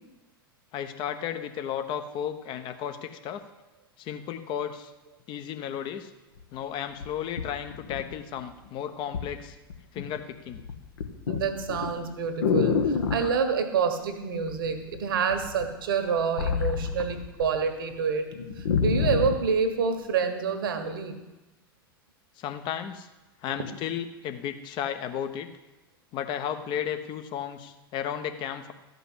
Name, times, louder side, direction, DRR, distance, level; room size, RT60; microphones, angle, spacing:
voice 1, 0.7-3.4 4.0-4.9 5.3-6.1 6.5-9.6 9.9-10.6 22.4-23.1 23.4-25.5 26.1-28.7, left 9 dB, 40° left, 8 dB, 1.0 m, -34 dB
sound 1, 6.4-6.5 7.0-8.5 9.1-9.4 9.7-10.2 10.5-13.4 14.5-15.0 15.3-17.6 17.9-18.0 18.3-19.5 20.1-20.2, left 6 dB, 70° left, 1.2 m, -28 dB
voice 2, 11.3-12.8 13.1-18.3 18.6-21.2, right 6 dB, 65° right, 7 dB, 1.5 m, -27 dB
13.5 x 5.3 x 8.0 m, 1.1 s
figure-of-eight pair, 85°, 12 cm